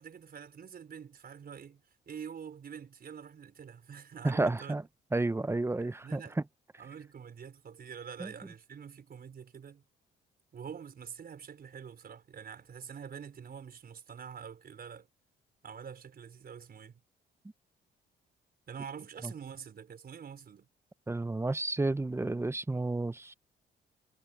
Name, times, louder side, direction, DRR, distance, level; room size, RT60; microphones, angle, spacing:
voice 1, 0.0-4.7 5.7-6.4 6.8-9.8 10.5-15.1 15.6-17.0 18.7-20.7, right 7 dB, 50° right, 4.8 m, -46 dB
voice 2, 4.2-4.8 5.1-6.2 8.2-8.3 21.1-23.3, right 2 dB, 15° right, 0.8 m, -31 dB
cardioid pair, 90°, 20 cm